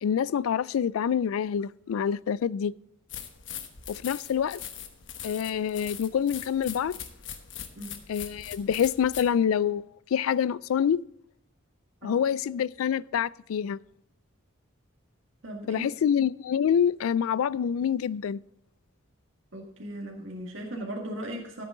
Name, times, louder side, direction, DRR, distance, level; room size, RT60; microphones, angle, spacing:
voice 1, 0.0-2.7 3.9-4.6 5.2-7.0 8.1-11.0 12.0-13.8 15.7-18.4, left 8 dB, 85° left, 0.3 m, -26 dB
sound 1, 3.1-9.3, left 9 dB, 60° left, 1.2 m, -41 dB
voice 2, 15.4-15.8 19.5-21.6, right 1 dB, 65° right, 1.9 m, -37 dB
14.0 x 8.6 x 3.8 m
head